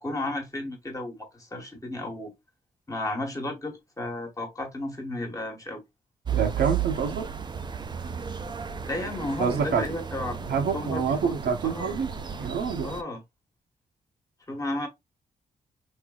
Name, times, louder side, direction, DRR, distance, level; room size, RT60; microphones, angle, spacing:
voice 1, 0.0-2.3 2.9-5.8 8.9-10.4 10.7-11.4 11.6-11.9 12.8-13.2 14.5-14.9, left 2 dB, 20° left, 1.2 m, -33 dB
sound 1, 6.2-13.0, right 8 dB, 30° right, 0.4 m, -33 dB
voice 2, 6.3-7.3 9.4-9.9 10.5-12.1 12.4-12.9, right 6 dB, 85° right, 0.8 m, -26 dB
3.5 x 2.7 x 2.3 m
cardioid pair, 100°, 16 cm